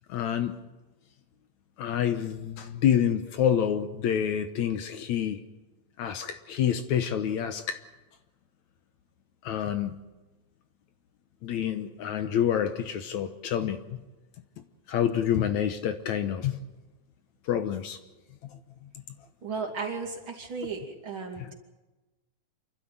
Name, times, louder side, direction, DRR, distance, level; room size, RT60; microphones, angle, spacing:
voice 1, 0.1-0.7 1.8-5.4 6.0-7.8 9.4-10.0 11.4-14.0 14.9-16.6 17.5-18.0 18.4-18.6 21.4-21.5, left 9 dB, 70° left, 8 dB, 2.2 m, -28 dB
voice 2, 19.4-21.5, right 4 dB, 40° right, 0 dB, 3.2 m, -35 dB
28.0 x 12.5 x 9.2 m, 1.1 s
omnidirectional pair, 3.7 m